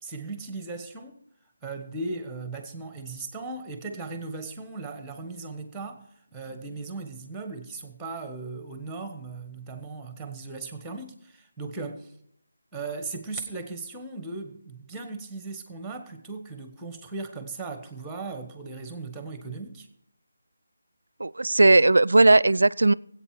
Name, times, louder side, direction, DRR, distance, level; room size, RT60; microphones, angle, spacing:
voice 1, 0.0-1.2 1.6-12.1 12.7-19.9, right 3 dB, 5° right, 1.2 m, -37 dB
voice 2, 21.2-22.9, right 2 dB, 70° right, 0.4 m, -17 dB
18.5 x 8.5 x 5.0 m
figure-of-eight pair, 155°, 0 cm